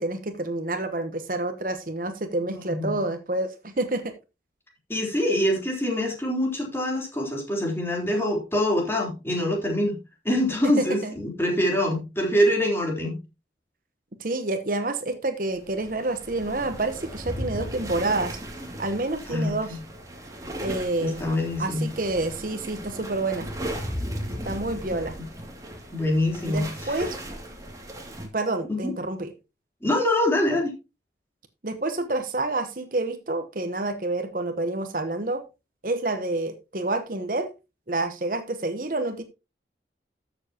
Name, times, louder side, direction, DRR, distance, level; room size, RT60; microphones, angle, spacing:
voice 1, 0.0-4.0 10.6-11.1 14.2-18.4 18.8-19.8 20.6-21.3 21.6-23.5 24.4-25.1 26.4-27.2 28.3-29.3 31.6-35.4 35.8-37.5 37.9-39.2, right 2 dB, 50° right, 8 dB, 1.0 m, -28 dB
voice 2, 2.5-3.0 4.9-10.0 10.3-13.2 19.3-19.8 21.0-21.9 25.9-27.1 28.7-28.9 29.8-30.7, left 1 dB, 15° left, -1 dB, 3.5 m, -25 dB
sound 1, 15.7-28.3, equal, 20° right, 2.3 m, -36 dB
13.5 x 7.1 x 2.9 m, 0.27 s
head